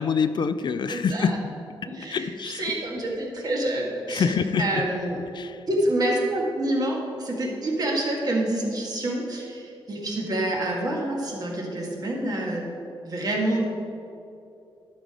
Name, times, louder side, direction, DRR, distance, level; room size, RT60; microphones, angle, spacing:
voice 1, 0.0-1.5 1.8-2.7 4.1-4.8 5.3-5.7, left 6 dB, 55° left, 11 dB, 0.4 m, -26 dB
voice 2, 0.9-1.3 1.9-5.2 5.7-12.7 13.0-13.6, right 1 dB, 45° right, -1 dB, 1.7 m, -27 dB
11.5 x 5.2 x 4.8 m, 2.6 s
wide cardioid pair, 110°, 9 cm